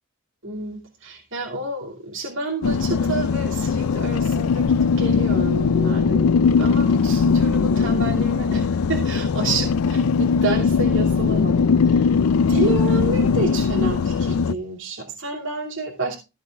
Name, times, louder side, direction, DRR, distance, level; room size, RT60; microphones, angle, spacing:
voice 1, 0.4-16.1, right 2 dB, 60° right, 0 dB, 2.8 m, -29 dB
sound 1, 2.6-14.5, left 5 dB, 75° left, 0.4 m, -20 dB
15.0 x 7.3 x 3.6 m, 0.27 s
head